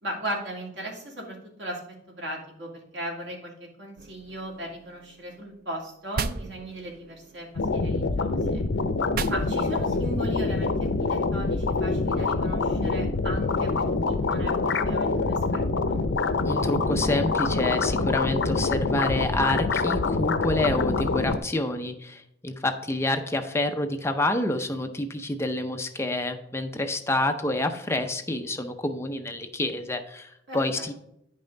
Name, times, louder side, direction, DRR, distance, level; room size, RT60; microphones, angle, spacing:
voice 1, 0.0-8.6 9.3-14.5 14.8-16.0 30.5-30.9, right 1 dB, 80° right, -1 dB, 2.5 m, -37 dB
sound 1, 4.0-5.9 6.1-8.4 9.1-11.9, right 5 dB, 50° right, 0.4 m, -38 dB
sound 2, 7.6-21.4, left 3 dB, 80° left, 0.6 m, -25 dB
voice 2, 16.4-30.9, left 1 dB, 15° left, 6 dB, 0.6 m, -28 dB
9.7 x 5.5 x 3.8 m, 0.75 s
head